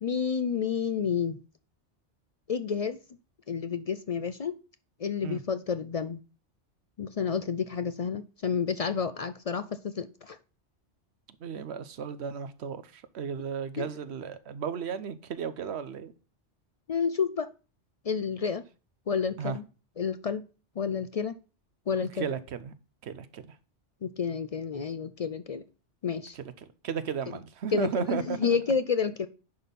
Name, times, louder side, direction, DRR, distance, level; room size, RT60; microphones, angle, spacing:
voice 1, 0.0-1.4 2.5-3.0 3.5-4.5 5.0-6.2 7.0-10.4 13.8-13.9 16.9-17.5 18.1-18.6 19.1-19.6 20.0-20.4 20.8-21.3 21.9-22.3 24.0-25.6 26.0-26.4 27.3-27.4 27.7-29.3, left 6 dB, 65° left, 0.3 m, -30 dB
voice 2, 11.4-16.1 19.4-19.6 22.1-22.7 23.0-23.5 26.3-26.4 26.8-28.6, right 7 dB, 65° right, 1.0 m, -34 dB
10.5 x 4.2 x 5.3 m
omnidirectional pair, 1.2 m